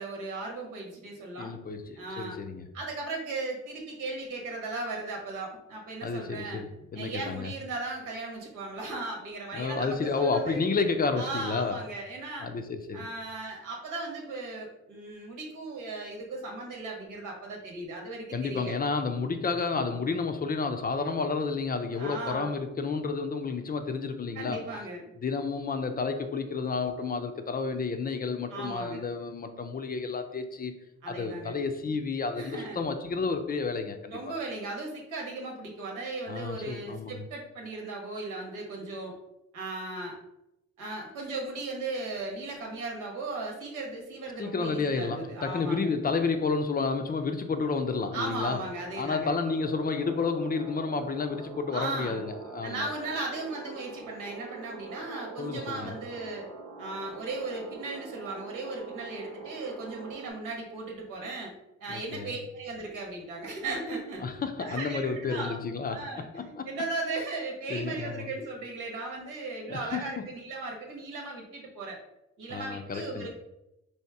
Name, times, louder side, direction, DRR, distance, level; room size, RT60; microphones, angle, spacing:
voice 1, 0.0-1.6 2.0-2.4 2.7-6.6 6.9-10.6 11.2-12.5 12.9-18.7 22.0-22.6 24.3-25.0 28.5-29.0 31.0-31.6 32.3-32.8 34.1-39.1 39.5-40.2 40.8-45.9 48.1-49.3 51.5-52.2 52.6-56.5 56.8-61.5 61.8-64.2 64.6-65.6 65.9-72.0 72.4-73.3, right 2 dB, 90° right, 1.2 m, -37 dB
voice 2, 1.4-2.6 6.0-7.5 9.5-11.8 12.4-13.0 18.3-24.6 25.2-30.7 31.1-34.2 36.3-37.2 44.4-48.6 49.0-52.9 55.4-55.9 61.9-62.3 64.2-66.7 67.7-68.3 69.7-70.2 72.5-73.3, left 4 dB, 30° left, 0.4 m, -31 dB
sound 1, 48.0-60.3, right 4 dB, 70° right, 1.0 m, -44 dB
3.1 x 2.8 x 4.5 m
cardioid pair, 90°, 30 cm